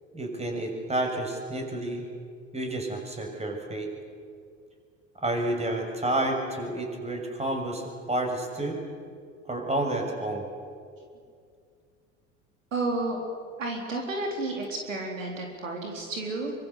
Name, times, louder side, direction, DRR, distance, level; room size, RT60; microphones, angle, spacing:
voice 1, 0.1-2.0 2.5-3.9 5.2-8.8 9.5-10.4, right 1 dB, 15° right, 3 dB, 6.8 m, -30 dB
voice 2, 12.7-13.2 13.6-16.5, right 2 dB, 85° right, 1 dB, 4.2 m, -31 dB
25.5 x 25.0 x 8.3 m, 2.2 s
hypercardioid pair, 70°, 37 cm